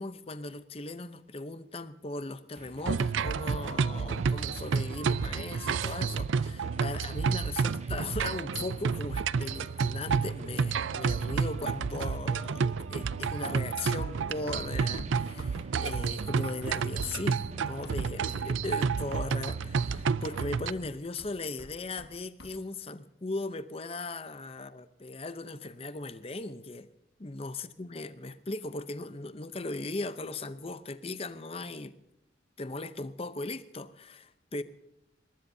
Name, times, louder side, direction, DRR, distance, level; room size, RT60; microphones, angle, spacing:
voice 1, 0.0-26.9 27.2-31.9 32.6-34.6, left 2 dB, 30° left, 12 dB, 0.7 m, -38 dB
sound 1, 2.6-20.6, right 2 dB, 35° right, 1.4 m, -52 dB
sound 2, 2.8-20.7, right 5 dB, 85° right, 0.5 m, -30 dB
Run, 14.2-18.4 18.7-19.2 19.5-22.1 22.4-22.6, left 1 dB, 60° left, 1.8 m, -48 dB
22.0 x 20.0 x 2.8 m, 0.88 s
head